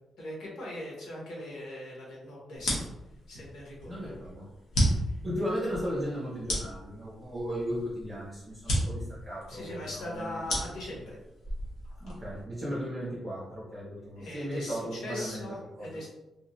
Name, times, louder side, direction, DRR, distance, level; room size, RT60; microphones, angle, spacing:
voice 1, 0.2-2.9 3.3-4.1 5.1-5.2 9.5-11.2 14.2-16.1, left 1 dB, 90° left, -4 dB, 1.4 m, -40 dB
sound 1, 2.5-12.4, equal, 75° left, 1.3 m, -33 dB
voice 2, 3.9-4.5 4.9-10.4 10.7-10.8 12.0-15.4 15.8-16.0, equal, 20° right, -8 dB, 1.1 m, -36 dB
3.5 x 2.9 x 2.8 m, 1.0 s
cardioid pair, 120°, 0 cm